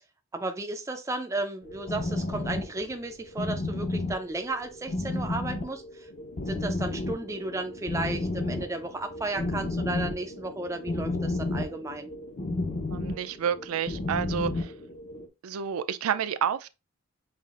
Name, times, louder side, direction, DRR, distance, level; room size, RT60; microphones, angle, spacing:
voice 1, 0.3-6.1 6.5-12.1, right 2 dB, 15° right, 0.3 m, -34 dB
sound 1, 1.7-15.3, left 2 dB, 40° left, 0.6 m, -32 dB
voice 2, 12.9-14.7 15.4-16.7, right 8 dB, 85° right, 0.4 m, -30 dB
5.5 x 2.4 x 2.4 m
head